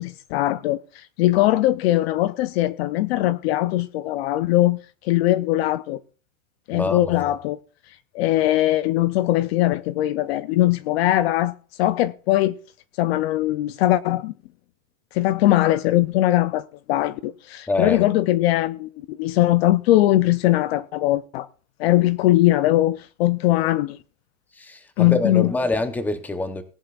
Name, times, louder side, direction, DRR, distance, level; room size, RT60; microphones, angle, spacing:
voice 1, 0.0-6.0 6.7-7.6 8.1-12.6 13.0-14.3 15.1-21.5 21.8-24.0 25.0-25.5, left 15 dB, 50° left, 0.6 m, -21 dB
voice 2, 6.7-7.1 17.7-18.0 24.6-26.6, left 2 dB, 5° left, 0.8 m, -25 dB
18.5 x 11.0 x 2.4 m
supercardioid pair, 150°, 42 cm